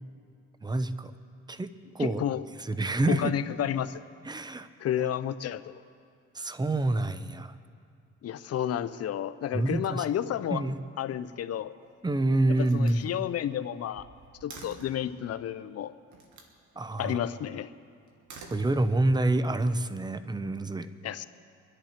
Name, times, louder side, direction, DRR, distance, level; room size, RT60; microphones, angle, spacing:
voice 1, 0.6-1.1 1.5-2.2 2.7-3.3 4.3-4.7 6.3-7.5 9.5-10.1 10.5-10.8 12.0-13.1 16.8-17.2 18.5-20.9, right 2 dB, 15° right, 12 dB, 0.7 m, -27 dB
voice 2, 2.0-2.4 3.1-4.0 4.8-5.7 8.2-10.6 11.0-11.7 12.5-14.1 14.4-15.9 17.0-17.7 21.0-21.2, left 10 dB, 55° left, 13 dB, 0.6 m, -31 dB
Slam, 11.5-12.1 12.6-15.1 16.1-16.6 18.1-19.2, right 3 dB, 70° right, 1.8 m, -49 dB
23.0 x 11.0 x 4.4 m, 2.3 s
cardioid pair, 90°, 30 cm